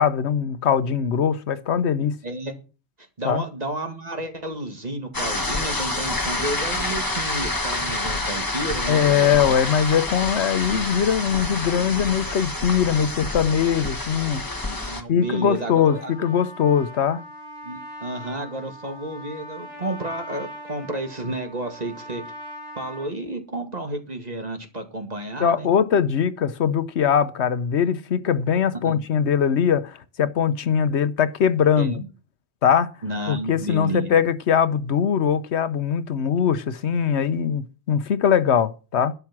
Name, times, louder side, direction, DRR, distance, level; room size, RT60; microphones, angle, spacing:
voice 1, 0.0-2.1 3.2-3.4 8.9-14.4 15.1-17.2 25.4-31.9 32.6-32.9 33.3-39.1, left 8 dB, 85° left, 1.1 m, -21 dB
voice 2, 2.2-2.6 3.2-9.3 14.6-16.1 17.6-22.2 22.8-25.7 28.8-29.0 31.8-32.1 33.0-34.2, right 1 dB, 40° right, 2.1 m, -31 dB
sound 1, 5.1-15.0, left 2 dB, 20° left, 1.3 m, -28 dB
Trumpet, 15.1-23.1, equal, 75° right, 5.3 m, -41 dB
12.0 x 7.8 x 6.1 m
omnidirectional pair, 1.1 m